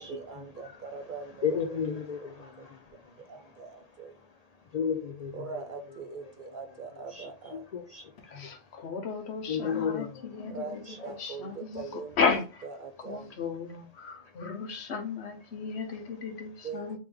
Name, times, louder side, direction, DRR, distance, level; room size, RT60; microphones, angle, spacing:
voice 1, 0.0-1.8 2.2-2.6 3.2-4.2 5.3-7.7 10.5-12.3 12.6-13.4 16.6-17.0, right 5 dB, 55° right, 0.6 m, -42 dB
voice 2, 1.4-3.6 4.7-5.6 7.1-8.6 9.5-10.6 10.9-11.0 14.2-14.3, left 7 dB, 55° left, 0.4 m, -34 dB
voice 3, 8.3-12.4 13.0-17.0, left 5 dB, 75° left, 1.1 m, -34 dB
3.4 x 3.1 x 3.3 m
omnidirectional pair, 1.1 m